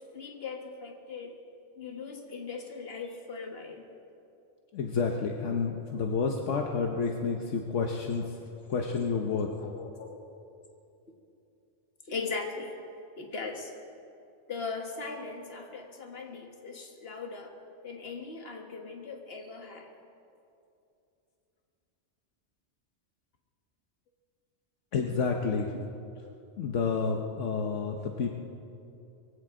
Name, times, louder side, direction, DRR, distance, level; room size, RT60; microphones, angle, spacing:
voice 1, 0.0-1.4 1.8-3.9 5.7-5.8 9.6-10.2 12.1-12.7 13.2-13.7 14.5-17.5 17.8-19.9, left 4 dB, 55° left, 2 dB, 1.8 m, -39 dB
voice 2, 4.7-8.2 8.7-9.5 24.9-25.8 26.6-28.4, left 5 dB, 75° left, 2 dB, 1.3 m, -29 dB
23.0 x 15.5 x 3.7 m, 2.7 s
omnidirectional pair, 1.3 m